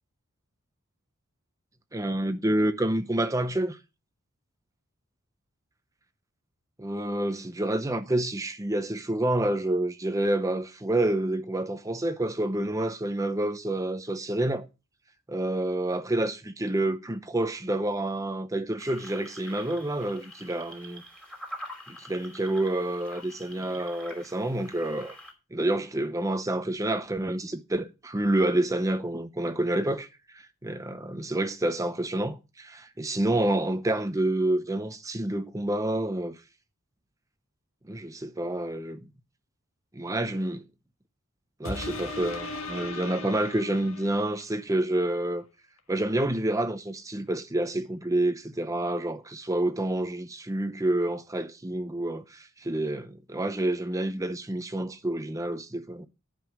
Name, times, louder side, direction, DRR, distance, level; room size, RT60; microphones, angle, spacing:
voice 1, 1.9-3.8 6.8-14.7 15.3-21.0 21.9-25.2 25.5-36.4 37.9-39.0 39.9-40.6 41.6-45.4 45.9-56.1, right 1 dB, 15° right, 0.7 m, -28 dB
sound 1, 18.8-25.3, equal, 5° left, 2.8 m, -46 dB
sound 2, 41.6-44.6 45.1-45.2, left 2 dB, 65° left, 1.7 m, -37 dB
11.0 x 5.4 x 6.3 m
head